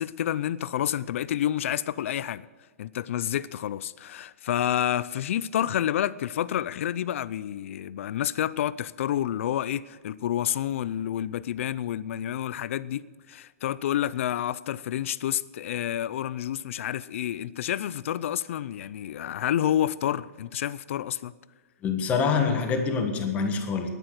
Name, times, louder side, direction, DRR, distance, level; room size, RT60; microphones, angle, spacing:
voice 1, 0.0-2.5 2.8-21.3, left 11 dB, 55° left, 0.5 m, -29 dB
voice 2, 21.8-23.9, left 5 dB, 15° left, 1.4 m, -25 dB
10.5 x 10.0 x 7.7 m
hypercardioid pair, 165°, 8 cm